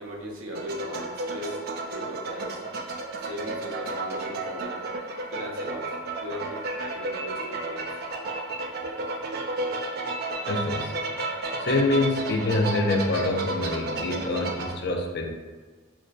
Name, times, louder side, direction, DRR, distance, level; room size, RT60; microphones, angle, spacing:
voice 1, 0.0-2.7 3.2-4.8 5.3-8.0, equal, 85° right, -1 dB, 0.7 m, -38 dB
sound 1, 0.5-14.7, right 2 dB, 45° right, 0.3 m, -32 dB
voice 2, 10.5-11.3 11.6-15.3, left 2 dB, 50° left, 2 dB, 0.4 m, -26 dB
5.0 x 2.1 x 2.4 m, 1.4 s
head